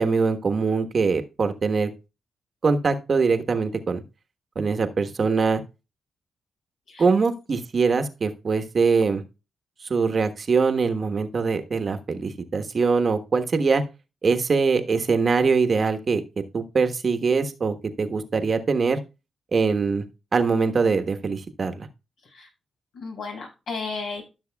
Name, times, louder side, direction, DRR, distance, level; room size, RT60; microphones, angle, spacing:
voice 1, 0.0-1.9 2.6-4.0 4.5-5.6 7.0-9.2 9.9-13.8 14.2-16.2 16.5-19.0 19.5-20.0 20.3-21.9, right 4 dB, 50° right, 7 dB, 1.3 m, -23 dB
voice 2, 22.9-24.3, left 4 dB, 75° left, -1 dB, 5.9 m, -34 dB
14.5 x 6.4 x 2.3 m, 0.28 s
cardioid pair, 60°, 0 cm